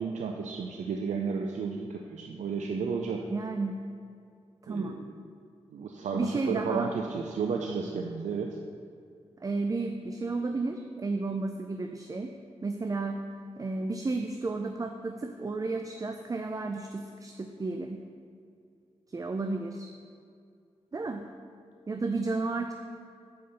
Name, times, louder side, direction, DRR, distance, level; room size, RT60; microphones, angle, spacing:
voice 1, 0.0-3.3 4.7-4.9 5.7-8.6, right 5 dB, 85° right, 2 dB, 0.5 m, -32 dB
voice 2, 3.3-3.8 4.6-5.0 6.1-6.9 9.4-12.3 12.6-13.2 13.6-18.0 19.1-19.9 20.9-21.3 21.9-22.7, right 3 dB, 30° right, 5 dB, 0.4 m, -32 dB
5.6 x 5.5 x 6.8 m, 2.3 s
cardioid pair, 75°, 12 cm